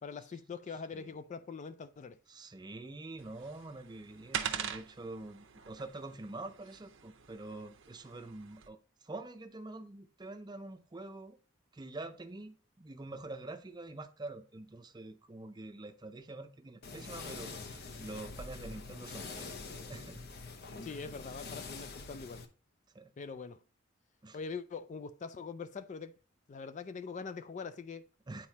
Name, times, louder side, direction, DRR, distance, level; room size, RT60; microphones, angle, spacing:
voice 1, 0.0-2.2 20.8-22.4 23.2-23.6 24.3-26.1 26.5-28.1, left 5 dB, 35° left, 0.3 m, -43 dB
voice 2, 2.3-11.4 11.7-19.6 19.9-20.2 22.9-23.1 24.2-24.4 28.3-28.5, right 2 dB, 20° right, 0.5 m, -46 dB
sound 1, 3.2-8.7, right 8 dB, 65° right, 0.7 m, -43 dB
sound 2, 16.8-22.5, left 3 dB, 50° left, 0.7 m, -45 dB
8.9 x 4.2 x 2.8 m
head